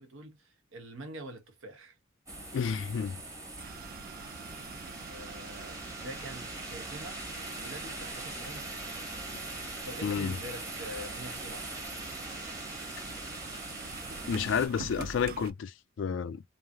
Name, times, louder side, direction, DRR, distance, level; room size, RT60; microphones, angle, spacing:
voice 1, 0.0-2.0 5.1-7.2 7.5-8.8 9.8-11.8, right 1 dB, 80° right, 1.1 m, -45 dB
sound 1, 2.3-14.7, right 2 dB, 15° right, 1.0 m, -42 dB
voice 2, 2.5-3.2 10.0-10.3 14.3-16.4, left 7 dB, 65° left, 0.3 m, -31 dB
sound 2, 3.6-15.5, right 5 dB, 45° right, 0.3 m, -46 dB
3.1 x 2.6 x 2.3 m
head